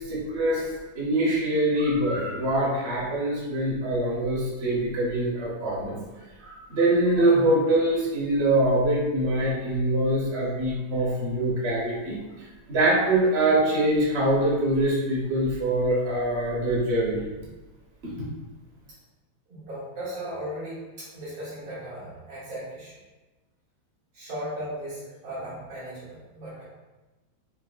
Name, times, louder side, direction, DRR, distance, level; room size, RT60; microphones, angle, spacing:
voice 1, 0.1-0.6 0.9-6.0 6.4-12.2 12.7-17.2 18.0-18.3, right 1 dB, 50° right, -5 dB, 0.8 m, -24 dB
voice 2, 19.5-23.0 24.1-26.6, equal, 80° right, -12 dB, 2.4 m, -37 dB
5.7 x 2.1 x 2.3 m, 1.1 s
omnidirectional pair, 2.2 m